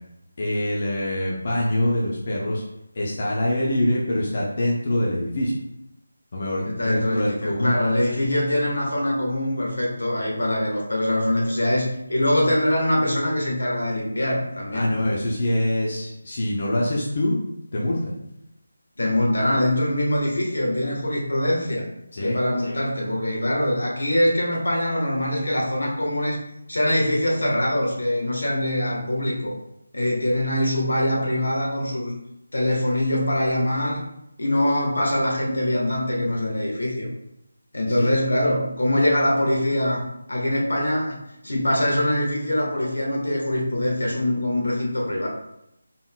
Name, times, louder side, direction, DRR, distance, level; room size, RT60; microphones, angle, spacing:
voice 1, 0.4-2.6 2.9-5.6 6.3-7.8 14.7-17.4 17.7-18.2 22.1-22.4 37.9-38.1, left 1 dB, 40° left, -4 dB, 0.7 m, -24 dB
voice 2, 6.6-15.0 19.0-21.9 22.2-26.4 26.7-29.5 29.9-32.1 32.5-34.0 34.4-37.1 37.7-40.0 40.3-41.1 41.4-45.3, left 1 dB, 80° left, -2 dB, 1.4 m, -23 dB
3.8 x 3.8 x 2.3 m, 0.83 s
figure-of-eight pair, 170°, 0 cm